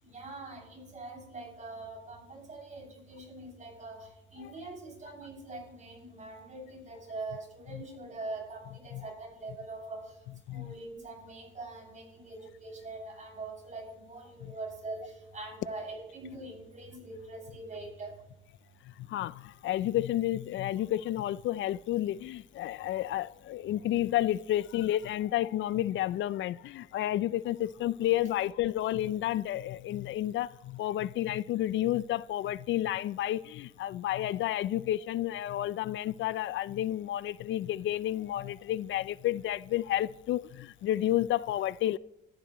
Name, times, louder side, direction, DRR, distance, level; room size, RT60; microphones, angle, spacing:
voice 1, 0.0-10.1 10.5-18.1, right 2 dB, 40° right, 6.7 m, -43 dB
voice 2, 18.9-42.0, left 13 dB, 75° left, 0.4 m, -31 dB
23.5 x 14.5 x 3.0 m
cardioid pair, 90°, 20 cm